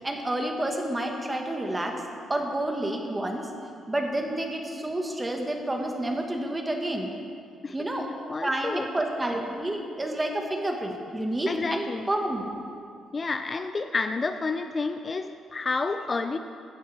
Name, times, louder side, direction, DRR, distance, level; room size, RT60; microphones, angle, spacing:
voice 1, 0.0-2.0 2.3-3.5 3.9-7.1 7.7-8.1 8.4-12.4, right 1 dB, 15° right, 2 dB, 1.5 m, -29 dB
voice 2, 8.3-8.9 11.5-12.1 13.1-16.4, left 3 dB, 35° left, 8 dB, 0.4 m, -30 dB
15.5 x 8.9 x 3.4 m, 2.4 s
cardioid pair, 90°, 0 cm